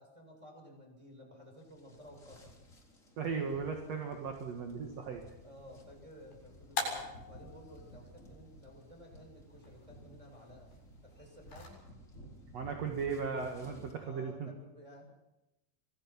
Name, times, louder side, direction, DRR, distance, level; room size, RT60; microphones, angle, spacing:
voice 1, 0.0-2.5 5.4-10.7 11.0-11.8 14.0-15.1, equal, 5° right, 1 dB, 6.8 m, -54 dB
sound 1, 1.6-14.0, equal, 20° left, 3.6 m, -55 dB
voice 2, 3.2-5.2 12.5-14.5, right 5 dB, 50° right, 3 dB, 2.1 m, -37 dB
sound 2, 5.3-11.7, left 3 dB, 55° left, 9.1 m, -45 dB
26.5 x 20.0 x 5.9 m, 0.93 s
omnidirectional pair, 5.2 m